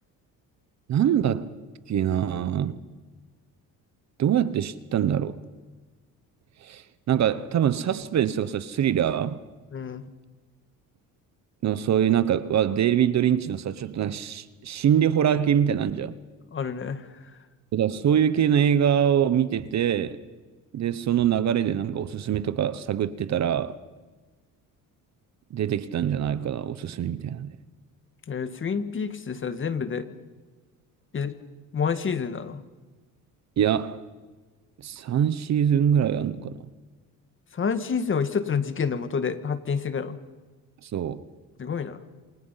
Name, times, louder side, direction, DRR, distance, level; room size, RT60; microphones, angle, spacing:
voice 1, 0.9-1.5 1.9-2.8 4.2-5.4 6.6-9.4 11.6-16.2 17.7-20.2 20.7-23.8 25.5-27.5 33.6-34.0 34.8-36.6 40.8-41.2, right 9 dB, 50° right, 1.1 m, -24 dB
voice 2, 9.7-10.0 16.5-17.1 28.3-30.1 31.1-31.4 31.7-32.6 37.5-40.2 41.6-42.0, left 6 dB, 35° left, 1.9 m, -28 dB
28.0 x 25.5 x 5.8 m
cardioid pair, 110°, 35 cm